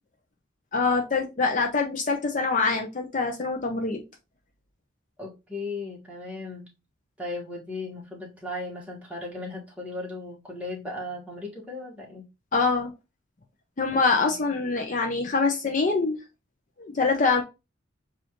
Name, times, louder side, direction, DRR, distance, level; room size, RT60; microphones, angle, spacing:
voice 1, 0.7-4.0 12.5-12.9 13.8-16.2 16.8-17.4, left 4 dB, 40° left, 0.6 m, -24 dB
voice 2, 5.2-6.7 7.2-12.2 13.9-14.3, left 2 dB, 5° right, 1.5 m, -36 dB
7.1 x 2.5 x 3.0 m
head